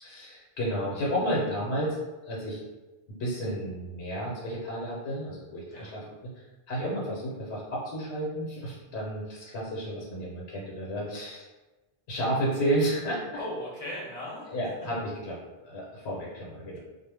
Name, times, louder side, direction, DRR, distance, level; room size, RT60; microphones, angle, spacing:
voice 1, 0.0-2.0 2.2-2.6 3.1-6.3 6.7-11.5 12.1-13.2 14.5-15.4 15.6-16.8, right 1 dB, 80° left, -4 dB, 1.0 m, -31 dB
voice 2, 5.7-6.1 13.4-14.7, left 1 dB, 40° left, -5 dB, 0.7 m, -38 dB
2.1 x 2.1 x 3.3 m, 1.1 s
omnidirectional pair, 1.1 m